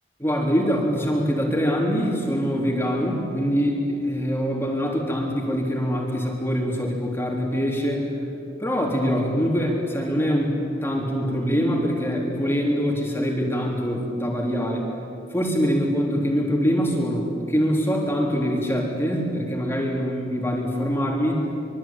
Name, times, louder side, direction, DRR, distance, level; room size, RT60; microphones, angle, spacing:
voice 1, 0.2-8.1 8.6-14.8 15.3-21.4, equal, 15° left, -2 dB, 3.6 m, -24 dB
25.5 x 23.5 x 9.0 m, 2.7 s
head